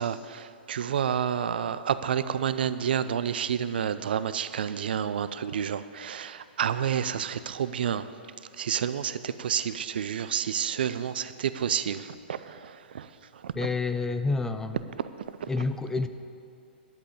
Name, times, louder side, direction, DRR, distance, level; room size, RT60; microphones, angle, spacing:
voice 1, 0.0-8.1 8.6-13.1 13.4-13.5, right 8 dB, 60° right, 13 dB, 0.5 m, -29 dB
voice 2, 13.5-14.8 15.5-16.1, left 3 dB, 10° left, 9 dB, 0.5 m, -28 dB
11.0 x 7.6 x 8.3 m, 2.4 s
figure-of-eight pair, 115°, 6 cm